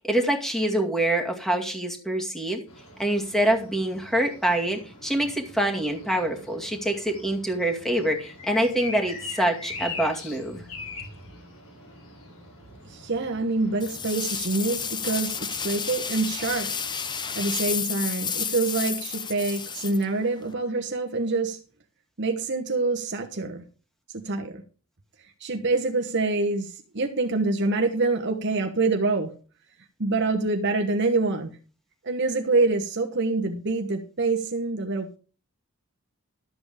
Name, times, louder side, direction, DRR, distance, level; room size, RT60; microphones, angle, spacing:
voice 1, 0.0-2.6 3.0-10.6, right 1 dB, ahead, 2 dB, 2.2 m, -25 dB
sound 1, 2.7-17.8, left 3 dB, 85° left, 7.3 m, -43 dB
voice 2, 12.9-16.7 17.3-21.6 22.2-23.6 24.1-24.6 25.4-29.3 30.0-31.5 32.0-35.2, right 3 dB, 50° right, 3 dB, 1.2 m, -26 dB
sound 2, 13.8-20.5, left 6 dB, 20° left, 0.8 m, -31 dB
13.0 x 7.9 x 5.0 m, 0.36 s
head